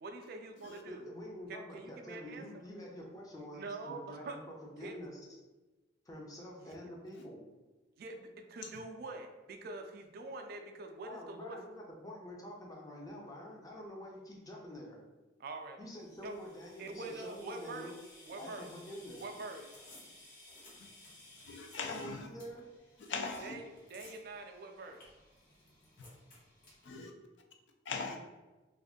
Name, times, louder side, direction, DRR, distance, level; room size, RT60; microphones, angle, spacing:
voice 1, 0.0-1.1 1.5-2.6 3.5-4.4 4.8-5.0 6.6-6.7 8.0-11.6 15.4-15.8 16.2-16.4 16.8-17.9 18.2-18.7 19.2-19.7 23.4-23.6 23.9-25.0, right 3 dB, 55° right, 0.3 m, -45 dB
voice 2, 0.9-4.4 4.8-5.2 6.1-7.4 11.0-15.0 15.8-17.9 18.4-19.3 21.8-22.7, equal, 20° left, 0.5 m, -47 dB
sound 1, 16.0-26.9, left 1 dB, 50° left, 0.9 m, -58 dB
voice 3, 21.5-22.3 23.1-23.5 26.8-27.1 27.9-28.2, left 4 dB, 75° left, 0.4 m, -40 dB
2.5 x 2.5 x 3.5 m
head